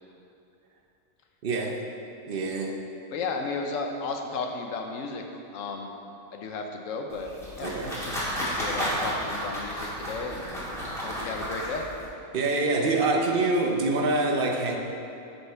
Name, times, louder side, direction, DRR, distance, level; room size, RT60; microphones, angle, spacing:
voice 1, 1.4-1.8 2.3-2.8 7.6-7.9 12.3-14.8, right 2 dB, 50° right, 2 dB, 0.8 m, -25 dB
voice 2, 3.1-5.2 5.5-5.9 6.3-7.7 8.4-10.7 11.0-11.9, left 4 dB, 75° left, 3 dB, 1.1 m, -34 dB
sound 1, 7.1-12.1, equal, ahead, 1.6 m, -32 dB
5.8 x 5.5 x 5.6 m, 2.8 s
omnidirectional pair, 1.4 m